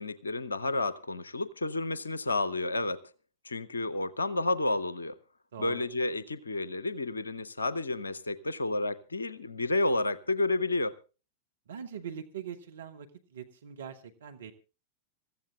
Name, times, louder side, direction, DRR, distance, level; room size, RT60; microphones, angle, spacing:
voice 1, 0.0-3.0 3.4-5.2 5.6-11.0, left 2 dB, 75° left, 0.6 m, -31 dB
voice 2, 5.5-5.9 11.7-14.5, right 8 dB, 65° right, 1.2 m, -42 dB
27.0 x 15.0 x 2.3 m
figure-of-eight pair, 90°, 0 cm